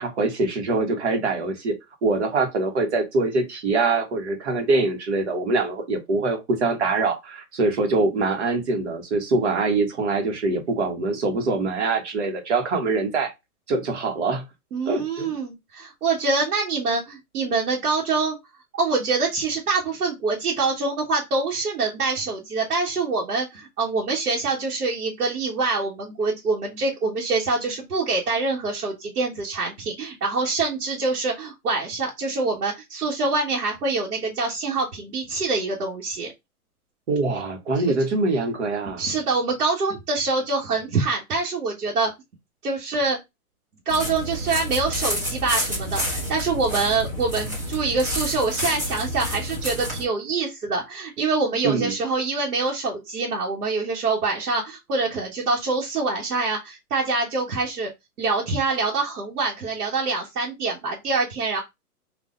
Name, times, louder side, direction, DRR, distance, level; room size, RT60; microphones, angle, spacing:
voice 1, 0.0-1.7 2.0-13.3 13.7-14.4 14.9-15.3 37.1-39.0 51.6-51.9, right 3 dB, 45° right, 1.3 m, -24 dB
voice 2, 14.7-18.4 18.7-36.3 37.9-38.0 39.0-42.1 42.6-43.2 43.9-57.9 58.2-61.6, right 3 dB, 85° right, 1.6 m, -25 dB
sound 1, 43.9-50.0, equal, 15° right, 0.5 m, -29 dB
4.1 x 2.7 x 3.8 m
hypercardioid pair, 160°, 45 cm